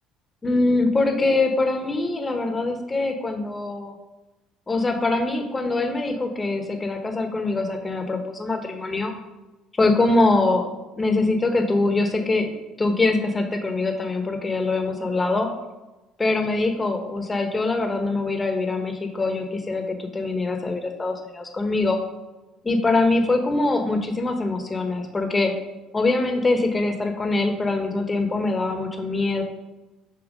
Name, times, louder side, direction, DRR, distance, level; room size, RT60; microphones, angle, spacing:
voice 1, 0.4-3.9 4.7-9.1 9.8-10.7 11.0-12.5 12.8-15.5 16.2-22.0 22.6-25.5 25.9-29.4, left 2 dB, 25° left, 4 dB, 1.1 m, -23 dB
7.3 x 2.8 x 5.3 m, 1.1 s
hypercardioid pair, 65°, 0 cm